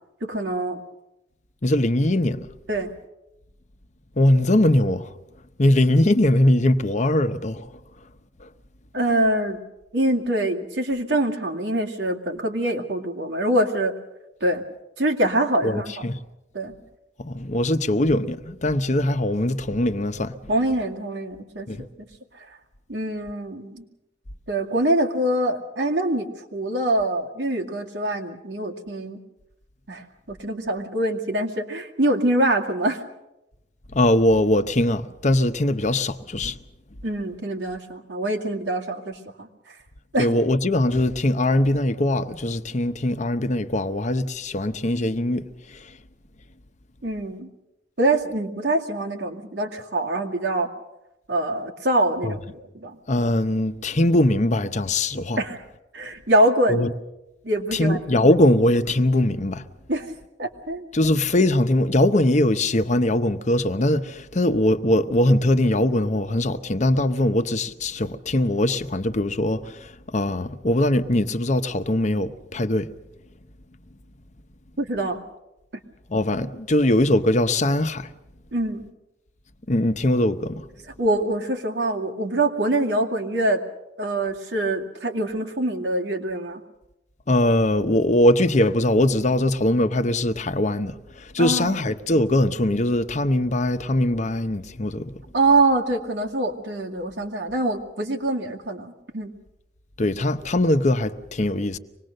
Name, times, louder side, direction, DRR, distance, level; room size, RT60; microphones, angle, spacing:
voice 1, 0.2-0.8 2.7-2.9 8.9-9.6 9.9-13.9 14.4-14.6 15.0-16.1 16.5-16.7 20.5-21.9 22.9-23.8 24.5-29.2 29.9-33.0 37.0-39.5 40.1-40.3 47.0-47.5 48.0-50.7 51.3-53.0 55.4-55.6 55.9-56.9 57.4-58.0 59.9-60.1 60.4-60.8 74.8-75.2 78.5-78.8 81.0-83.6 84.0-86.6 91.4-91.7 95.3-98.9 99.1-99.3, right 1 dB, 85° right, 2.4 m, -24 dB
voice 2, 1.6-2.5 4.2-5.1 5.6-7.7 8.4-8.5 15.6-16.2 17.2-20.3 21.7-21.8 33.9-36.6 40.2-45.9 52.2-52.3 53.1-55.4 56.7-56.9 57.7-59.6 60.9-72.9 76.1-78.1 79.7-80.7 87.3-95.2 100.0-101.8, left 1 dB, 45° left, 0.9 m, -21 dB
25.0 x 20.0 x 6.6 m
head